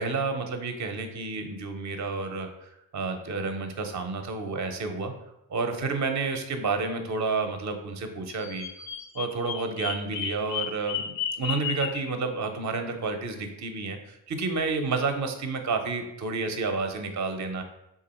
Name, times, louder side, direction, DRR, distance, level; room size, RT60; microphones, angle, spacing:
voice 1, 0.0-5.1 5.5-8.7 9.1-17.6, right 4 dB, 40° right, 6 dB, 0.6 m, -30 dB
Bird vocalization bird call bird song, 8.3-12.1, left 9 dB, 65° left, 0.5 m, -33 dB
3.0 x 2.4 x 4.1 m, 0.85 s
cardioid pair, 50°, 47 cm